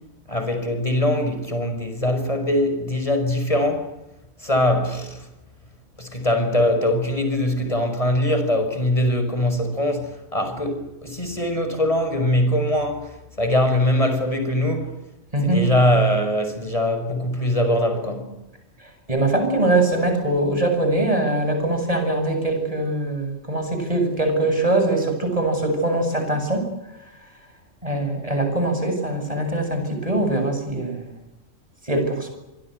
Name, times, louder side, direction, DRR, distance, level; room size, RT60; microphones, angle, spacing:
voice 1, 0.3-3.9 4.4-5.2 6.0-13.1 13.4-14.9 15.4-18.3, left 1 dB, 25° left, 5.9 m, -22 dB
voice 2, 15.3-15.6 19.1-26.7 27.8-31.1 31.9-32.3, right 2 dB, 25° right, 7.8 m, -22 dB
26.5 x 24.5 x 8.0 m
omnidirectional pair, 1.4 m